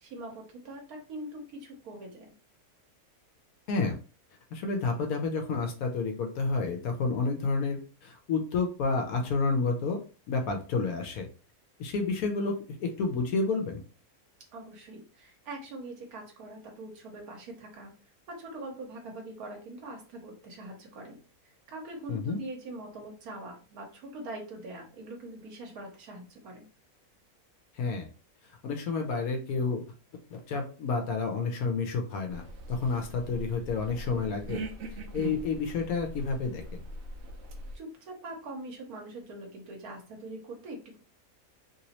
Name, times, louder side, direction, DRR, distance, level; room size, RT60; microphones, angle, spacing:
voice 1, 0.0-2.3 14.5-17.9 18.3-21.2 21.7-26.7 37.7-41.0, right 2 dB, 75° right, 1 dB, 1.3 m, -43 dB
voice 2, 4.5-10.0 10.3-11.3 11.8-13.8 22.1-22.4 27.7-28.1 28.6-29.8 30.3-32.4 32.7-34.6 34.9-36.6, left 4 dB, 75° left, 3 dB, 1.1 m, -30 dB
sound 1, 32.3-37.8, right 2 dB, 60° right, 0.8 m, -41 dB
3.0 x 3.0 x 2.8 m, 0.37 s
omnidirectional pair, 1.6 m